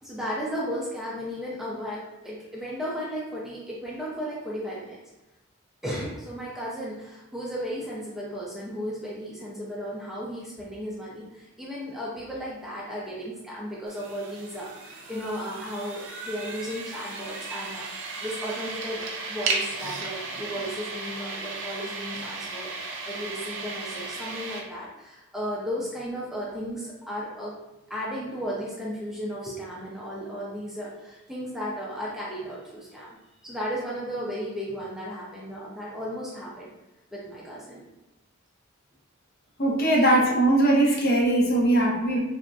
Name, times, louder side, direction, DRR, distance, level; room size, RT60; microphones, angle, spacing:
voice 1, 0.0-5.0 5.8-17.9 18.2-27.5 27.9-33.2 33.4-36.7 37.1-37.8, equal, ahead, -6 dB, 0.4 m, -35 dB
sound 1, 13.9-24.6, right 3 dB, 60° right, 0.5 m, -35 dB
voice 2, 39.6-42.2, right 1 dB, 45° left, -1 dB, 0.6 m, -20 dB
3.4 x 2.0 x 2.5 m, 1.0 s
head